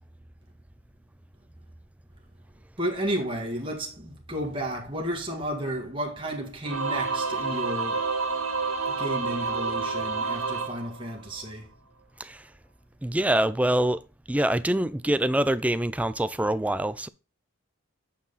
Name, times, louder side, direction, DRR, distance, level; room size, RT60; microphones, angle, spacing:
voice 1, 2.8-8.0 9.0-11.7, equal, 25° right, 1.8 m, -32 dB
Singing / Musical instrument, 6.6-11.5, right 4 dB, 85° right, 2.0 m, -29 dB
voice 2, 13.0-14.0 14.3-17.1, right 1 dB, 5° right, 0.4 m, -25 dB
8.7 x 5.6 x 4.1 m
head